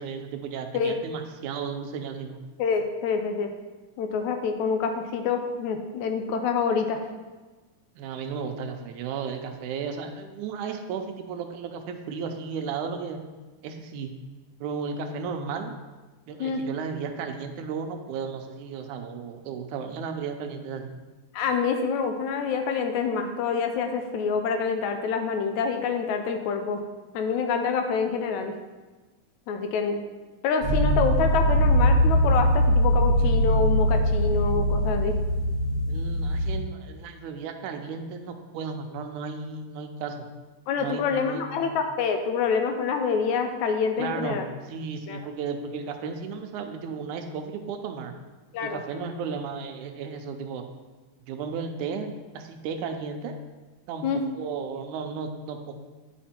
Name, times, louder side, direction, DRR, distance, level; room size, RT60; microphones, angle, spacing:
voice 1, 0.0-2.4 8.0-13.2 13.6-14.1 14.6-15.7 16.3-21.0 35.9-40.3 40.8-41.7 44.0-44.4 44.7-48.1 48.6-50.6 51.3-53.4 53.9-54.1 54.4-55.7, right 5 dB, 85° right, 5 dB, 2.1 m, -34 dB
voice 2, 2.6-3.5 4.0-7.0 16.4-16.6 21.3-26.8 27.1-28.5 29.5-30.1 30.4-35.2 40.7-44.5 45.1-45.2 48.5-48.8 54.0-54.2, left 5 dB, 75° left, 6 dB, 2.0 m, -26 dB
sound 1, 30.6-36.6, equal, 40° left, 1.9 m, -22 dB
10.0 x 5.3 x 4.4 m, 1.2 s
omnidirectional pair, 3.5 m